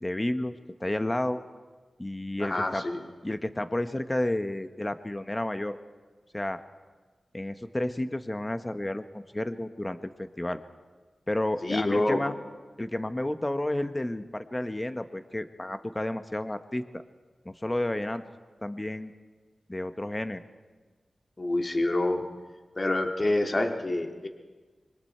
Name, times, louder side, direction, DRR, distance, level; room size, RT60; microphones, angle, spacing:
voice 1, 0.0-1.4 2.0-2.8 3.2-5.8 6.3-6.6 7.3-10.6 11.3-12.3 12.8-16.8 17.4-18.2 18.6-19.1 19.7-20.4, left 1 dB, 25° left, 9 dB, 1.2 m, -31 dB
voice 2, 2.4-3.0 11.6-12.2 21.4-22.2 22.8-24.3, left 2 dB, 45° left, 3 dB, 2.2 m, -27 dB
25.5 x 23.5 x 4.5 m, 1.4 s
cardioid pair, 45°, 0 cm